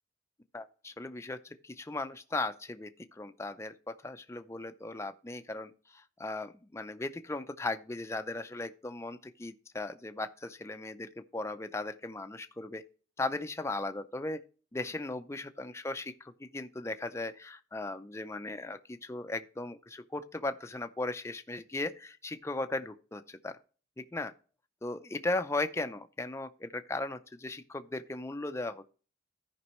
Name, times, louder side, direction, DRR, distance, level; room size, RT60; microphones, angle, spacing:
voice 1, 0.5-12.8 13.2-14.4 14.7-23.6 24.0-24.3 24.8-28.9, left 2 dB, 15° left, 0.5 m, -37 dB
14.0 x 5.2 x 3.0 m
head